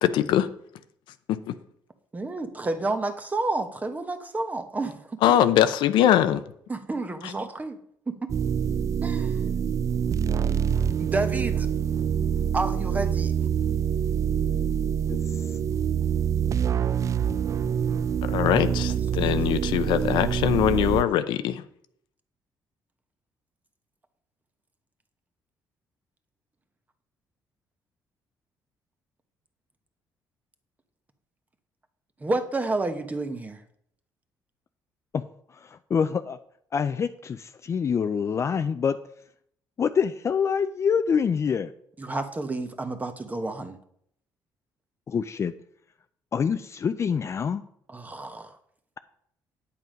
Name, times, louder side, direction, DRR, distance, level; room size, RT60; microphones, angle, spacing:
voice 1, 0.0-0.5 1.3-1.5 5.2-6.4 7.2-7.3 18.2-21.6, left 11 dB, 90° left, 11 dB, 0.7 m, -22 dB
voice 2, 2.1-5.0 5.2-5.3 6.7-7.8 8.1-8.2 9.0-9.4 11.0-11.7 12.5-13.3 18.7-18.8 19.1-19.3 32.2-33.6 42.0-43.8 47.9-48.5, right 2 dB, 20° right, 8 dB, 1.1 m, -30 dB
sound 1, 8.3-21.0, right 8 dB, 40° right, 0.4 m, -26 dB
voice 3, 15.1-15.6 35.1-35.2 35.5-36.4 36.7-39.0 39.8-41.7 45.1-45.5 46.3-47.6, left 6 dB, 35° left, 10 dB, 0.4 m, -26 dB
9.2 x 8.4 x 5.2 m, 0.69 s
cardioid pair, 110°, 8 cm